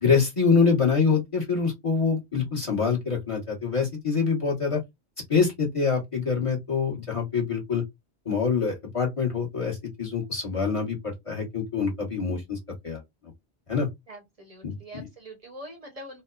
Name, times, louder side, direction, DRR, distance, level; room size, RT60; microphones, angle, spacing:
voice 1, 0.0-4.8 5.3-7.8 8.2-12.6 12.8-13.0 13.7-13.9 14.6-15.0, left 5 dB, 30° left, 1.1 m, -25 dB
voice 2, 14.1-16.2, right 1 dB, 35° right, 0.8 m, -44 dB
3.0 x 2.0 x 2.3 m
omnidirectional pair, 1.1 m